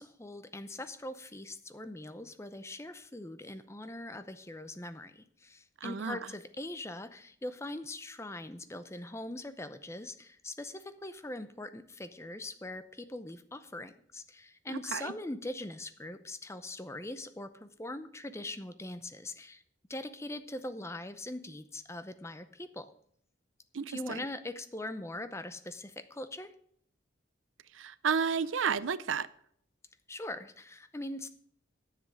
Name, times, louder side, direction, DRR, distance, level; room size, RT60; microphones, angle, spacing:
voice 1, 0.0-19.6 19.9-22.9 23.9-26.5 30.1-31.3, left 1 dB, 15° left, 11 dB, 0.6 m, -42 dB
voice 2, 5.8-6.3 14.7-15.1 23.7-24.2 27.7-29.3, right 6 dB, 80° right, 17 dB, 0.5 m, -32 dB
10.0 x 7.5 x 6.4 m, 0.66 s
head